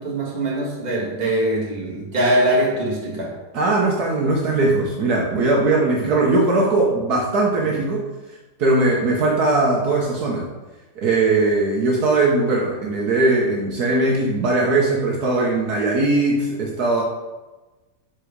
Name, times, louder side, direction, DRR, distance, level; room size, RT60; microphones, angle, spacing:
voice 1, 0.0-3.3 7.6-7.7, right 1 dB, 25° right, -4 dB, 1.6 m, -22 dB
voice 2, 3.5-8.0 8.6-10.5 11.0-17.0, right 2 dB, 65° right, -2 dB, 1.4 m, -19 dB
5.9 x 4.9 x 5.1 m, 1.1 s
omnidirectional pair, 1.9 m